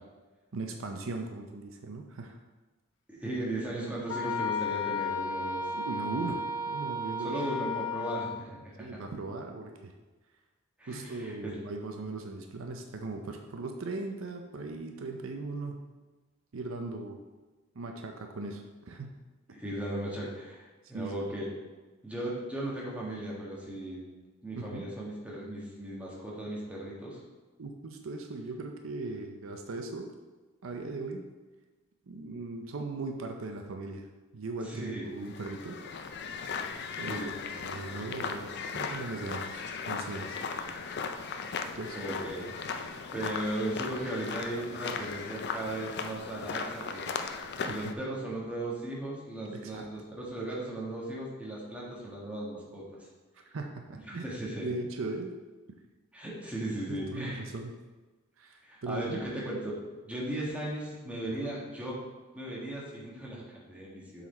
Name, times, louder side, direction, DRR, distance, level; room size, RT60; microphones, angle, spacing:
voice 1, 0.5-2.4 5.7-6.4 6.7-7.4 8.8-9.9 10.9-15.8 16.5-17.2 17.7-19.1 20.9-21.2 24.6-24.9 27.6-30.1 30.6-31.3 32.1-34.1 34.3-35.8 37.0-40.4 41.8-42.0 43.1-43.3 47.6-47.9 49.4-49.9 53.5-54.3 54.6-55.3 56.9-57.7 58.4-59.2 61.4-61.5, right 3 dB, 70° right, 4 dB, 0.6 m, -38 dB
voice 2, 3.1-5.7 7.2-9.0 10.8-11.5 19.5-21.5 22.0-24.0 24.4-27.2 34.6-35.1 37.1-37.3 41.9-42.5 42.8-47.1 47.6-53.1 54.1-54.7 56.1-57.5 58.6-59.8 60.0-61.9 62.3-64.3, right 1 dB, 5° right, -5 dB, 1.4 m, -37 dB
Wind instrument woodwind instrument, 4.1-8.5, left 3 dB, 75° left, 0.9 m, -33 dB
sound 1, 35.2-47.9, left 5 dB, 50° left, 0.4 m, -37 dB
7.2 x 4.0 x 4.2 m, 1.2 s
head